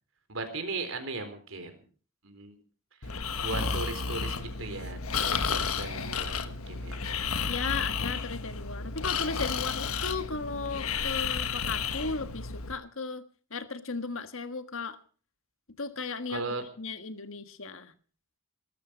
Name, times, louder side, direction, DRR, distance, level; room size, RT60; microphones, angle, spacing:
voice 1, 0.3-1.8 2.2-2.5 3.4-7.0 16.3-16.6, right 3 dB, 65° right, 7 dB, 4.0 m, -37 dB
Breathing, 3.0-12.7, left 5 dB, 90° left, 1.3 m, -32 dB
voice 2, 7.5-13.2 13.5-15.0 15.8-16.4 16.8-17.9, left 4 dB, 70° left, 10 dB, 1.6 m, -35 dB
19.5 x 14.0 x 5.2 m, 0.40 s
head